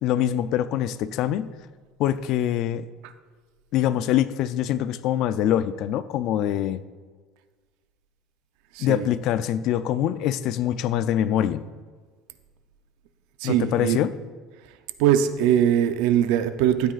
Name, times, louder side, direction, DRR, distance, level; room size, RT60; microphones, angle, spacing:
voice 1, 0.0-1.5 2.0-2.9 3.7-6.8 8.8-11.6 13.4-14.1, left 11 dB, 60° left, 14 dB, 0.4 m, -24 dB
voice 2, 8.7-9.1 13.4-14.0 15.0-16.9, right 10 dB, 80° right, 10 dB, 0.6 m, -21 dB
12.5 x 9.2 x 2.5 m, 1.5 s
cardioid pair, 120°, 0 cm